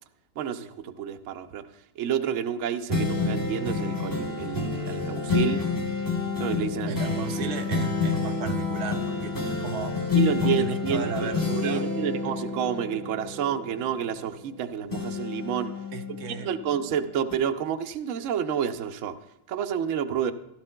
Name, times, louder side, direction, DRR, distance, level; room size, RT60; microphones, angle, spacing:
voice 1, 0.4-1.6 2.0-5.6 6.4-7.0 10.1-11.3 11.6-15.7 16.3-19.1 19.5-20.3, right 8 dB, 65° right, 8 dB, 0.9 m, -29 dB
sound 1, 2.9-14.5 14.9-16.8 17.3-17.4, left 4 dB, 15° left, 1.1 m, -29 dB
voice 2, 6.9-10.0 10.4-11.9 15.9-16.5, right 7 dB, 85° right, 7 dB, 1.3 m, -35 dB
16.0 x 12.5 x 2.2 m, 0.92 s
omnidirectional pair, 1.7 m